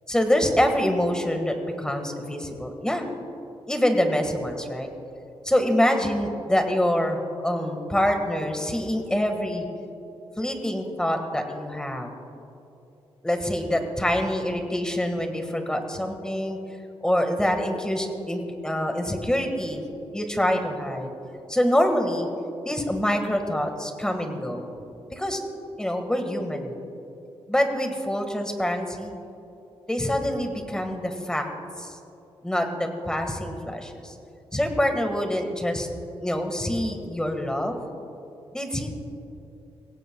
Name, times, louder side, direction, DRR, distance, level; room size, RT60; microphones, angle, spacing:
voice 1, 0.1-3.1 3.7-4.9 5.4-9.7 10.4-12.1 13.2-16.6 17.0-19.8 20.1-21.1 21.5-22.3 22.6-24.7 25.1-25.4 25.8-26.8 27.5-29.1 29.9-31.4 31.8-31.9 32.4-34.1 34.5-35.9 36.2-37.8 38.5-38.9, equal, 5° left, 4 dB, 1.6 m, -25 dB
22.0 x 17.5 x 2.3 m, 2.9 s
wide cardioid pair, 120°, 10 cm